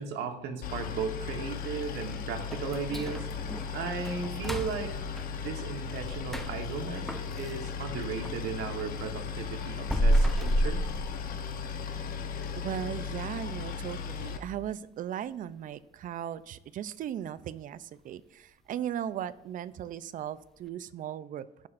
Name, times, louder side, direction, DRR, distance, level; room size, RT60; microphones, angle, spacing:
voice 1, 0.0-3.3 3.7-4.9 5.4-10.8, right 6 dB, 80° right, 4 dB, 1.3 m, -36 dB
Boat Water vehicle, 0.6-14.4, left 6 dB, 60° left, 0.9 m, -37 dB
sound 1, 2.5-8.4 8.8-11.7 12.0-12.1 12.6-12.7 13.2-13.6 13.9-14.0 14.5-14.6, equal, ahead, 0.6 m, -31 dB
voice 2, 12.6-21.7, right 10 dB, 55° right, 15 dB, 0.5 m, -37 dB
16.0 x 5.8 x 2.5 m, 0.86 s
cardioid pair, 110°, 17 cm